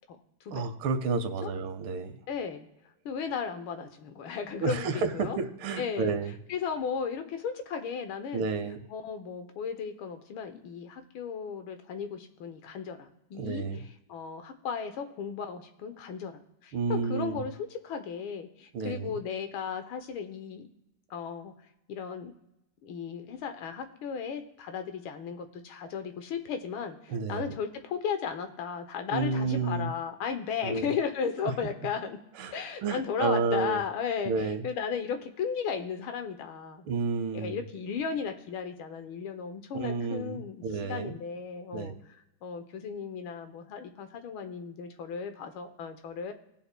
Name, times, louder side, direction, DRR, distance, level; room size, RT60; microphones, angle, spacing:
voice 1, 0.5-2.2 4.6-6.4 8.3-8.8 13.3-13.8 16.7-17.5 18.7-19.2 27.1-27.5 29.1-29.9 30.6-30.9 31.4-31.5 32.4-32.6 32.8-33.8 34.2-34.6 36.8-37.6 39.7-41.2 41.7-41.9, right 4 dB, 85° right, 9 dB, 1.7 m, -31 dB
voice 2, 2.3-2.7 3.0-5.4 5.8-6.1 6.5-8.5 8.9-13.6 14.1-20.7 21.1-21.5 21.9-22.3 22.8-32.2 32.5-36.9 37.3-40.6 40.9-41.9 42.4-46.3, left 6 dB, 85° left, 8 dB, 1.7 m, -35 dB
19.0 x 7.3 x 2.2 m, 0.86 s
omnidirectional pair, 2.2 m